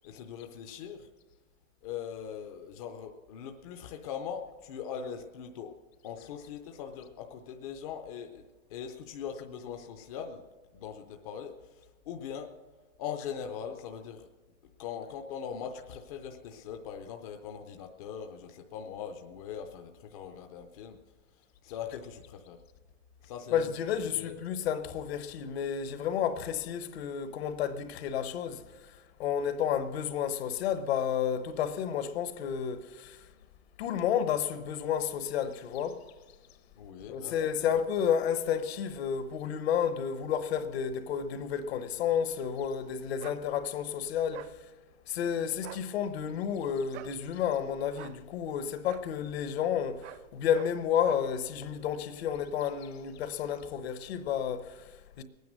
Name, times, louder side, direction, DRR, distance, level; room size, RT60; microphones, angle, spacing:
voice 1, 0.0-1.1 1.8-5.7 6.0-8.4 8.7-10.4 10.7-12.5 13.0-14.3 14.8-21.0 21.6-22.6 23.2-23.7 24.1-24.4 36.8-37.5, left 8 dB, 30° left, 0.6 m, -41 dB
voice 2, 23.5-33.3 33.8-36.0 37.1-44.7 45.1-55.2, left 8 dB, 55° left, 1.1 m, -31 dB
sound 1, 43.2-43.4 44.3-44.5 45.6-45.9 46.9-47.2 47.9-48.2 48.8-49.1 50.0-50.2 50.5-50.7 51.0-51.3, right 14 dB, 65° right, 0.5 m, -45 dB
20.5 x 9.4 x 6.4 m
supercardioid pair, 175°, 38 cm